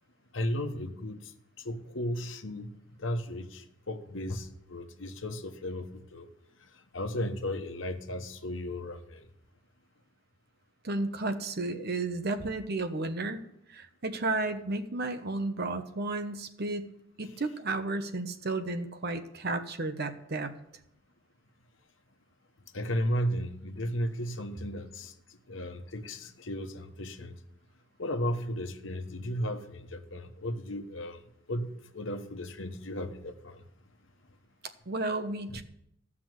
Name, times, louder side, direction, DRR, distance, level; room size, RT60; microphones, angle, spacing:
voice 1, 0.3-1.2 1.6-2.7 3.0-6.3 6.9-9.2 22.7-25.1 25.5-27.3 28.0-31.2 31.5-33.6 35.5-35.6, equal, 70° left, 6 dB, 1.2 m, -35 dB
voice 2, 10.8-13.4 13.7-16.9 17.2-20.5 34.9-35.6, right 2 dB, 55° right, 8 dB, 1.1 m, -33 dB
15.0 x 6.1 x 7.9 m, 0.77 s
head